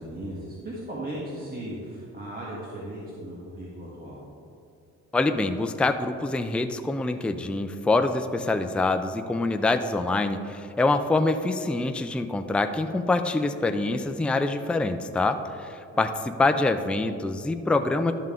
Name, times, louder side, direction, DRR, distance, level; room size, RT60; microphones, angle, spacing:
voice 1, 0.0-4.2 15.9-16.0, right 1 dB, 30° right, -6 dB, 1.6 m, -37 dB
voice 2, 5.1-18.1, left 2 dB, 5° left, 7 dB, 0.4 m, -25 dB
12.0 x 5.5 x 3.7 m, 2.5 s
cardioid pair, 90°, 30 cm